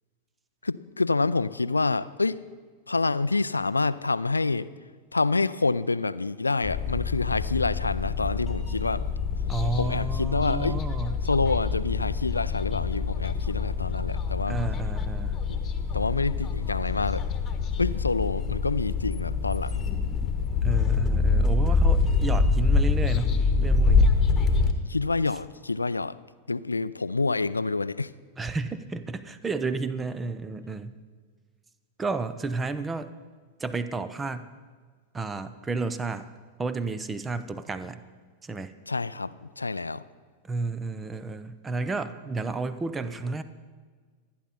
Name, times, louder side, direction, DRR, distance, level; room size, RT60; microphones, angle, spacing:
voice 1, 0.6-2.4 2.9-4.7 5.1-9.0 9.8-10.8 11.2-14.6 15.9-17.2 17.8-19.8 24.9-26.1 26.5-28.1 38.9-39.3 39.6-40.0, left 3 dB, 80° left, 16 dB, 0.4 m, -27 dB
sound 1, 6.6-24.7, left 4 dB, 25° left, 1.5 m, -25 dB
voice 2, 9.5-11.3 14.5-15.4 20.6-24.2 28.4-31.0 32.0-33.1 33.6-34.5 35.1-36.3 36.6-38.0 38.4-38.7 40.4-43.4, right 3 dB, 15° right, 12 dB, 0.8 m, -32 dB
26.5 x 10.0 x 4.3 m, 1.5 s
figure-of-eight pair, 90°, 0 cm